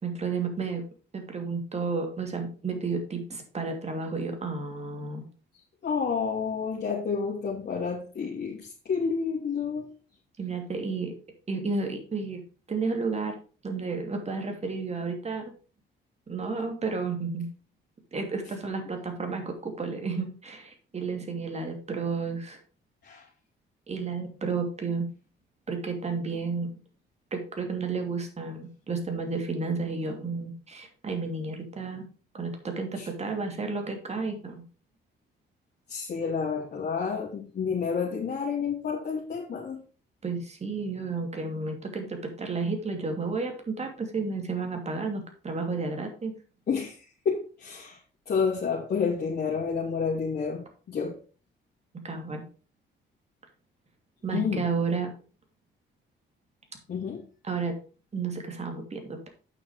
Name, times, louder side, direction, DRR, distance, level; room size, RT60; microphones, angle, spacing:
voice 1, 0.0-0.8 1.1-5.2 10.4-11.1 11.5-12.4 12.7-13.3 13.6-15.5 16.3-17.5 18.1-22.6 23.9-25.1 25.7-26.7 27.3-32.0 32.3-34.6 40.2-46.3 52.0-52.4 54.2-55.1 57.4-57.7 58.1-59.3, right 4 dB, 35° right, 4 dB, 2.8 m, -32 dB
voice 2, 5.8-9.9 23.0-23.3 33.0-33.1 35.9-39.8 46.7-48.0 48.3-50.6 50.9-51.2 54.3-54.7 56.9-57.2, left 5 dB, 55° left, -5 dB, 2.8 m, -30 dB
8.8 x 5.8 x 4.9 m, 0.38 s
cardioid pair, 90°, 20 cm